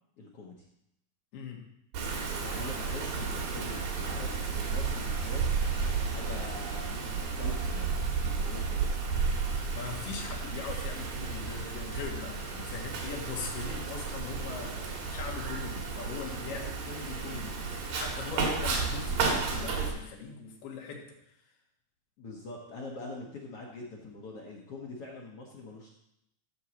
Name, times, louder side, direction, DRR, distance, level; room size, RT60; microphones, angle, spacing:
voice 1, 0.2-0.7 2.2-5.4 6.1-9.0 16.5-16.6 22.2-25.9, left 2 dB, 60° left, -2 dB, 1.6 m, -44 dB
voice 2, 1.3-1.7 9.7-21.2, left 5 dB, 80° left, 0 dB, 3.8 m, -41 dB
Wind, 1.9-19.9, right 5 dB, 70° right, 3.8 m, -32 dB
13.0 x 4.7 x 7.3 m, 0.80 s
omnidirectional pair, 4.5 m